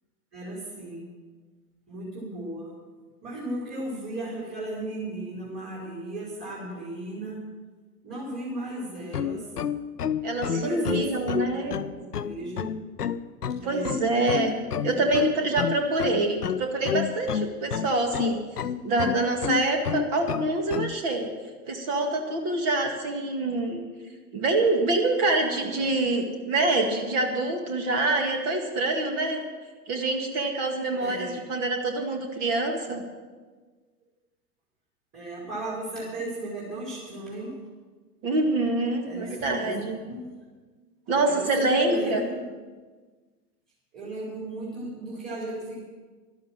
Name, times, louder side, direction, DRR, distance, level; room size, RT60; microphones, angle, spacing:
voice 1, 0.3-1.1 1.9-2.7 3.2-7.4 8.0-9.5 10.4-12.6 13.6-14.0 14.9-15.3 31.0-31.4 35.1-37.6 39.0-40.5 41.2-42.5 43.9-45.8, right 1 dB, 20° right, -6 dB, 4.5 m, -36 dB
sound 1, 9.0-20.9, left 8 dB, 90° left, 0.7 m, -29 dB
voice 2, 10.2-11.7 13.6-14.6 14.8-18.4 18.8-21.3 21.7-23.8 24.3-29.4 29.9-33.0 38.2-40.0 41.1-42.2, right 2 dB, 40° right, 4 dB, 2.1 m, -26 dB
12.5 x 11.5 x 7.5 m, 1.4 s
figure-of-eight pair, 100°, 45 cm